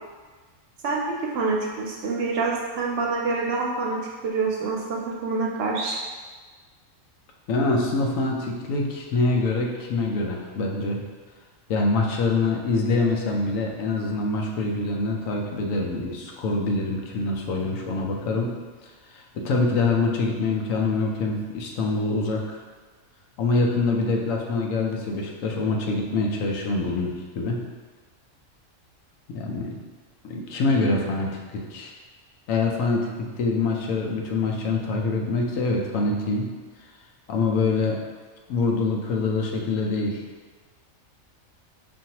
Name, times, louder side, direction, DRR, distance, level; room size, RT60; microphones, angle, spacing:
voice 1, 0.8-6.0, right 4 dB, 60° right, -1 dB, 0.7 m, -26 dB
voice 2, 7.5-11.0 11.7-18.5 19.1-22.6 23.4-27.6 29.3-29.7 30.2-31.9 32.5-36.5 37.3-38.0 38.5-40.2, left 3 dB, 80° left, 0 dB, 1.0 m, -25 dB
5.5 x 2.6 x 2.8 m, 1.4 s
omnidirectional pair, 1.4 m